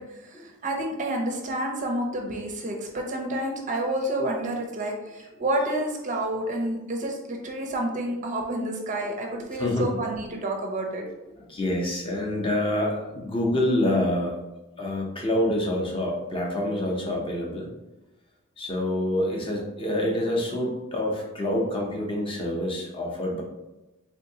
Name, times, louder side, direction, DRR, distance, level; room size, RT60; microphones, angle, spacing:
voice 1, 0.0-11.0, right 1 dB, 35° right, 1 dB, 0.5 m, -29 dB
voice 2, 9.6-10.0 11.5-14.4 14.8-17.7 18.6-23.4, left 1 dB, 25° left, -1 dB, 0.6 m, -27 dB
3.5 x 2.8 x 2.7 m, 1.0 s
head